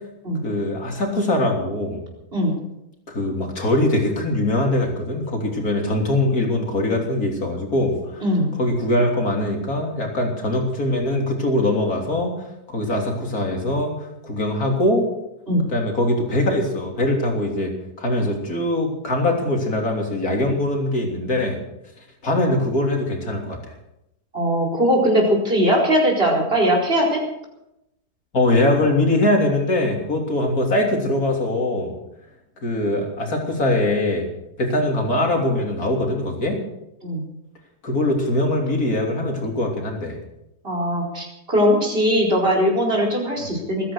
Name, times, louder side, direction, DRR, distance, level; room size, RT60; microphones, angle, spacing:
voice 1, 0.4-2.0 3.1-8.2 8.6-12.3 12.7-13.9 14.2-15.1 15.7-17.7 18.0-21.6 22.2-23.6 28.3-32.0 32.6-34.3 34.6-36.6 37.8-40.2, left 1 dB, 60° left, 1 dB, 3.7 m, -22 dB
voice 2, 8.2-8.5 15.5-15.6 24.3-27.2 37.0-37.2 40.6-43.9, equal, 35° right, -1 dB, 4.8 m, -20 dB
21.0 x 10.0 x 6.6 m, 0.86 s
omnidirectional pair, 1.8 m